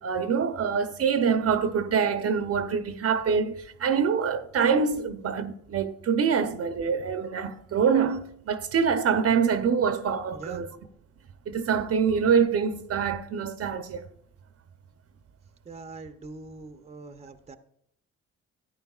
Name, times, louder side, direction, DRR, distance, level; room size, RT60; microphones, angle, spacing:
voice 1, 0.0-10.7 11.5-14.1, right 6 dB, 50° right, 0.8 m, -25 dB
voice 2, 10.3-10.7 15.6-17.6, right 3 dB, 20° right, 0.7 m, -42 dB
13.0 x 9.6 x 2.4 m
cardioid pair, 90°, 30 cm